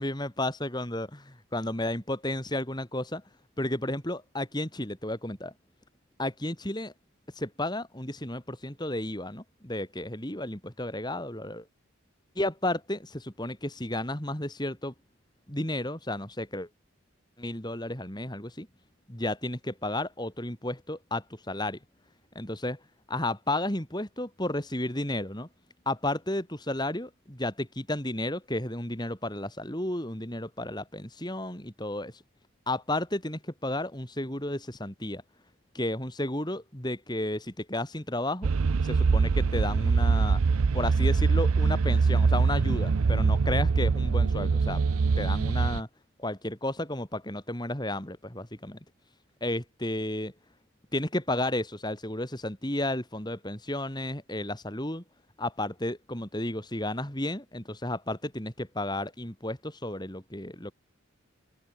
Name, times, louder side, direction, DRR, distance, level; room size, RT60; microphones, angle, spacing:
voice 1, 0.0-3.2 3.6-5.5 6.2-6.9 7.3-11.6 12.3-14.9 15.5-16.7 17.4-18.7 19.1-21.8 22.3-22.8 23.1-25.5 25.8-32.2 32.7-35.2 35.7-38.5 38.8-40.4 40.7-44.8 45.2-45.9 46.2-48.8 49.4-50.3 50.9-55.0 55.4-60.7, left 1 dB, 20° left, 3.3 m, -32 dB
sound 1, 38.4-45.8, right 4 dB, 90° right, 0.5 m, -24 dB
open air
head